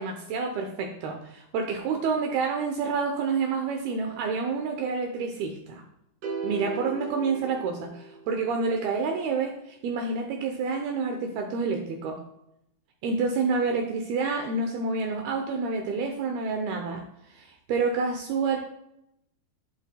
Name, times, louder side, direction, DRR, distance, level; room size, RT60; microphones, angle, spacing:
voice 1, 0.0-5.8 6.4-12.2 13.0-18.6, right 4 dB, 85° right, 3 dB, 2.2 m, -28 dB
sound 1, 6.2-8.5, right 4 dB, 55° right, 3.4 m, -36 dB
11.0 x 9.4 x 2.2 m, 0.81 s
omnidirectional pair, 5.5 m